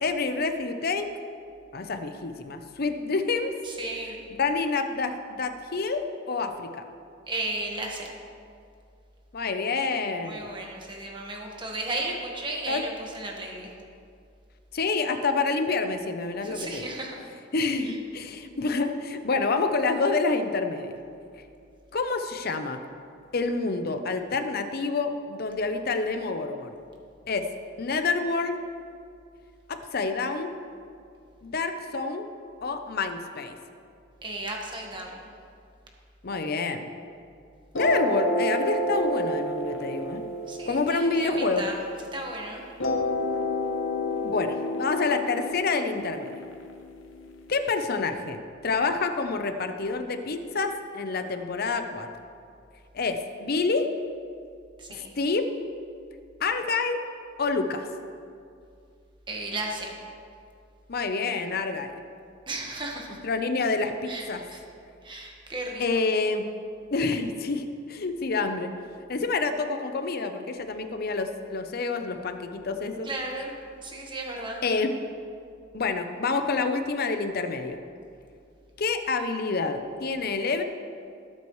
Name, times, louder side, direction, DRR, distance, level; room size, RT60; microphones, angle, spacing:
voice 1, 0.0-1.1 1.7-3.5 4.4-6.8 9.3-10.5 12.7-12.8 14.7-16.9 17.5-20.9 21.9-22.8 23.3-26.7 27.3-27.5 27.8-28.5 29.7-30.5 31.4-32.3 32.6-33.5 36.2-36.8 37.7-40.2 40.7-41.6 44.2-46.3 47.5-48.4 48.6-52.1 52.9-53.9 54.9-55.5 56.4-57.0 57.4-57.9 60.9-61.9 63.2-64.4 65.8-66.4 66.9-67.6 67.9-68.7 69.1-73.1 74.6-74.9 75.7-77.8 78.8-80.6, left 4 dB, 55° left, 7 dB, 0.7 m, -27 dB
voice 2, 3.6-4.2 7.3-8.1 10.2-13.7 16.4-17.2 17.9-18.0 34.2-35.2 40.5-41.8 42.1-42.6 54.8-55.1 59.3-59.9 62.5-63.2 64.1-64.6 65.0-66.0 73.0-73.5 73.8-74.6, right 2 dB, 25° right, 0 dB, 1.5 m, -34 dB
sound 1, 37.7-42.1 42.8-47.7, left 1 dB, 85° left, 0.9 m, -30 dB
17.5 x 8.4 x 3.2 m, 2.4 s
head